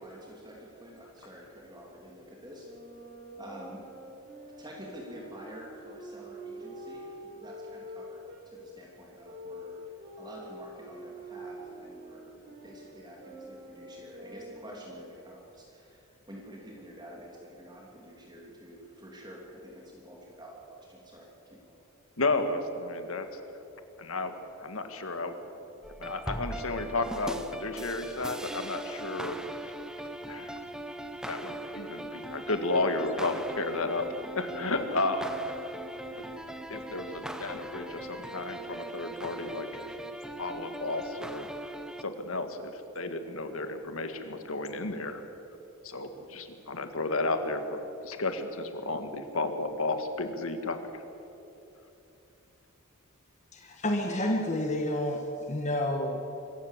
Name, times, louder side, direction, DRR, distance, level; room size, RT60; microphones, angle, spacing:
voice 1, 0.0-2.7 3.4-3.9 4.6-9.8 10.2-21.8, equal, 20° right, -2 dB, 2.9 m, -48 dB
Wind instrument woodwind instrument, 2.6-8.4 9.2-15.0, equal, 45° right, 4.1 m, -46 dB
voice 2, 22.2-23.4 24.0-24.3 24.6-25.3 26.0-29.4 30.3-30.6 31.2-34.1 34.4-35.3 36.1-36.2 36.7-39.9 40.4-41.5 42.0-45.2 45.8-51.0, left 2 dB, 70° left, 8 dB, 1.8 m, -32 dB
sound 1, 25.8-42.0, right 1 dB, 5° right, 0.7 m, -40 dB
voice 3, 53.5-56.3, left 1 dB, 30° left, 2 dB, 1.4 m, -30 dB
25.0 x 15.0 x 7.4 m, 3.0 s
head